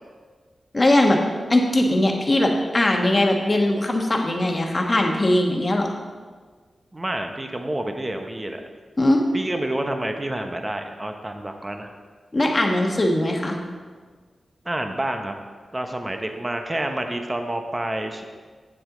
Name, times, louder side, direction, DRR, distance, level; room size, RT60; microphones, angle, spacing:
voice 1, 0.7-1.2 1.5-5.9 9.0-9.3 12.3-13.6, left 1 dB, 35° left, 2 dB, 1.3 m, -20 dB
voice 2, 6.9-8.6 9.3-11.9 14.6-15.3 15.7-18.3, right 1 dB, 25° right, 5 dB, 0.9 m, -28 dB
8.6 x 7.7 x 3.9 m, 1.5 s
cardioid pair, 65°, 0 cm